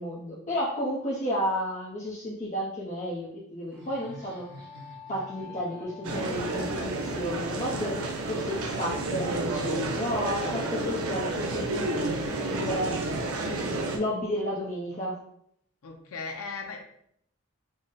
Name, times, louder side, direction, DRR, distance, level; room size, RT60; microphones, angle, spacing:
voice 1, 0.0-4.4 5.1-12.1 12.5-13.0 13.9-15.2, equal, 35° left, -7 dB, 0.6 m, -32 dB
sound 1, 3.7-8.9, left 4 dB, 5° right, 0.6 m, -49 dB
Laughter, 3.8-11.6, equal, 45° right, 1.3 m, -49 dB
sound 2, 6.0-14.0, right 2 dB, 90° right, 0.5 m, -31 dB
voice 2, 10.2-10.6 15.8-16.9, left 4 dB, 90° left, 3 dB, 0.6 m, -38 dB
3.7 x 2.1 x 3.9 m, 0.70 s
head